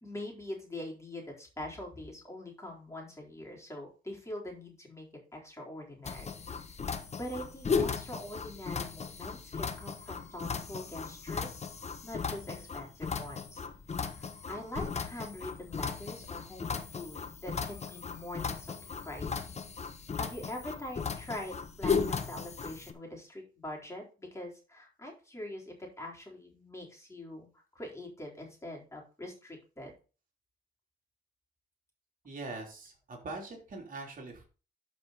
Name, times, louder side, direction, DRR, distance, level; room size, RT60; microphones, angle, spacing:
voice 1, 0.0-11.6 12.0-13.6 14.1-19.5 20.2-29.9, left 1 dB, 15° left, -1 dB, 4.0 m, -44 dB
sound 1, 6.0-22.9, left 5 dB, 35° left, 1.2 m, -36 dB
voice 2, 32.2-34.5, right 3 dB, 45° right, 1 dB, 3.3 m, -42 dB
12.0 x 5.3 x 4.1 m, 0.35 s
cardioid pair, 90°, 20 cm